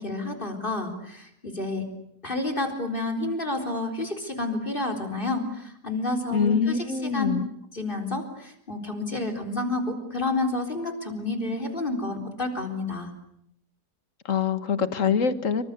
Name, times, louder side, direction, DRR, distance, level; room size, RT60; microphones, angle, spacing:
voice 1, 0.0-1.8 2.2-7.3 7.7-13.1, left 2 dB, 30° left, 4 dB, 4.1 m, -30 dB
voice 2, 6.3-7.5 14.3-15.6, left 6 dB, 55° left, 12 dB, 1.8 m, -24 dB
27.0 x 25.0 x 8.2 m, 0.73 s
omnidirectional pair, 1.7 m